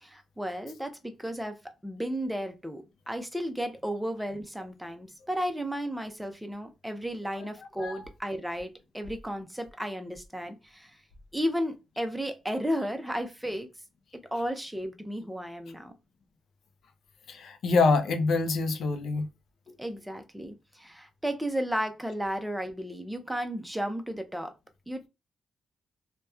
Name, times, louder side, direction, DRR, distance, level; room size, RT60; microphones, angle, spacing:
voice 1, 0.0-10.9 11.3-13.7 14.3-15.9 19.8-24.5 24.9-25.1, equal, 5° right, 0.5 m, -34 dB
voice 2, 17.3-19.3, left 4 dB, 80° left, 0.5 m, -25 dB
2.8 x 2.1 x 2.3 m
cardioid pair, 100°, 0 cm